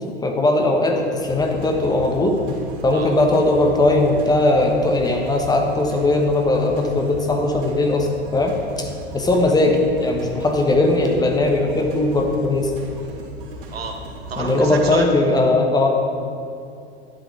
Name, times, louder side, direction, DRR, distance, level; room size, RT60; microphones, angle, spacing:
voice 1, 0.2-2.4 2.8-8.9 9.1-12.7 14.4-15.9, left 2 dB, 10° left, 2 dB, 1.2 m, -19 dB
sound 1, 1.2-14.9, equal, 55° right, 2.9 m, -37 dB
voice 2, 14.3-15.1, right 4 dB, 70° right, 2 dB, 1.7 m, -29 dB
11.5 x 10.5 x 4.7 m, 2.5 s
figure-of-eight pair, 90°, 32 cm